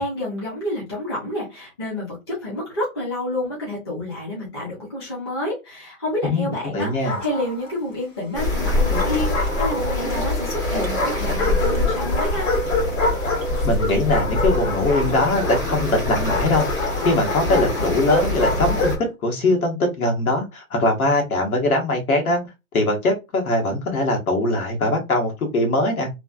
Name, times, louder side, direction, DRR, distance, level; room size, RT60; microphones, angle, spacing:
voice 1, 0.0-12.5, left 1 dB, 20° left, -6 dB, 0.7 m, -29 dB
voice 2, 6.2-7.2 13.6-16.6 17.0-18.9 19.2-22.4 22.7-26.1, left 2 dB, 75° left, 1 dB, 1.5 m, -21 dB
Bark, 6.8-7.7 8.6-10.2 10.9-19.1, left 3 dB, 60° left, 1.2 m, -27 dB
sound 1, 8.3-19.0, left 2 dB, 35° left, 1.4 m, -25 dB
sound 2, 8.3-15.1, right 5 dB, 45° right, 0.5 m, -34 dB
3.2 x 2.3 x 2.4 m, 0.24 s
hypercardioid pair, 180°, 43 cm